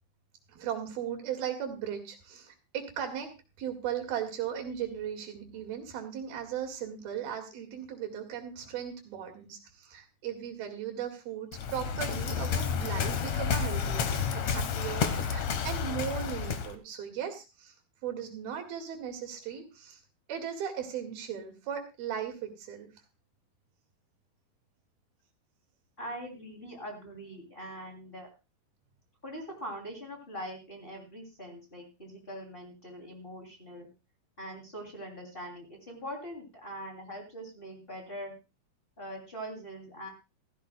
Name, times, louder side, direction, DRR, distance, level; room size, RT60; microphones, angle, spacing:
voice 1, 0.5-3.3 3.6-17.7 18.0-20.0 20.3-22.9, right 9 dB, 90° right, 4 dB, 3.9 m, -37 dB
Waves surf, 11.5-16.8, left 6 dB, 60° left, 2.0 m, -30 dB
voice 2, 26.0-28.3 29.2-33.9 34.4-38.3 39.0-40.1, equal, 15° left, 0 dB, 2.7 m, -42 dB
16.0 x 15.0 x 2.3 m, 0.28 s
omnidirectional pair, 4.2 m